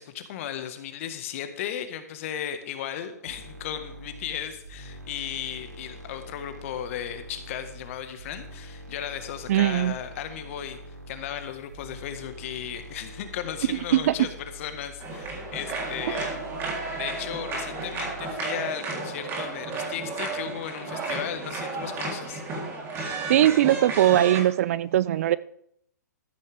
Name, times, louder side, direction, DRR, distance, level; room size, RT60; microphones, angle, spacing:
voice 1, 0.0-10.8 11.1-16.3 16.9-22.4, left 10 dB, 50° left, 8 dB, 1.7 m, -35 dB
sound 1, 3.3-18.3, equal, 80° right, 3.3 m, -44 dB
voice 2, 9.5-9.9 13.7-14.1 23.3-25.4, right 13 dB, 50° right, 19 dB, 0.5 m, -21 dB
sound 2, 15.0-24.4, right 3 dB, 25° right, 3.6 m, -33 dB
13.5 x 12.0 x 3.6 m, 0.71 s
hypercardioid pair, 130°, 9 cm